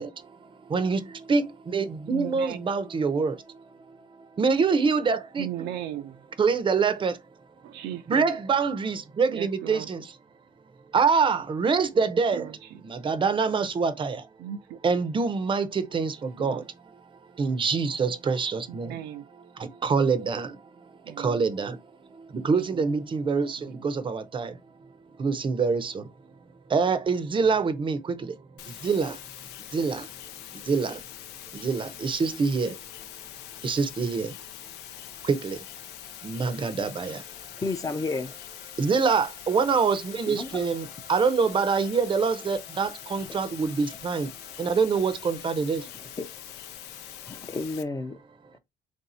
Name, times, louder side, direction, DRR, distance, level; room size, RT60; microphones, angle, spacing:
voice 1, 0.0-4.0 4.4-6.0 6.4-7.2 8.1-10.2 10.9-12.5 12.8-14.2 14.8-17.0 17.3-20.6 21.0-21.8 22.1-24.6 25.2-26.1 26.7-28.4 28.6-29.2 29.7-30.1 30.5-31.0 31.5-32.8 33.6-34.3 35.2-35.6 36.2-37.3 37.5-37.6 38.1-45.9, right 5 dB, 30° right, 0.6 m, -26 dB
voice 2, 2.1-2.6 5.4-6.2 7.6-8.3 9.3-9.9 12.1-12.8 14.4-14.8 16.4-16.7 18.7-19.2 21.0-21.4 22.5-23.0 23.6-23.9, right 11 dB, 85° right, 0.6 m, -37 dB
sound 1, 28.6-47.8, left 12 dB, 85° left, 0.5 m, -43 dB
voice 3, 37.6-38.3 40.3-40.6 43.3-43.4 46.2-46.3 47.3-48.2, left 3 dB, 20° left, 0.6 m, -31 dB
3.3 x 2.7 x 4.2 m
cardioid pair, 110°, 17 cm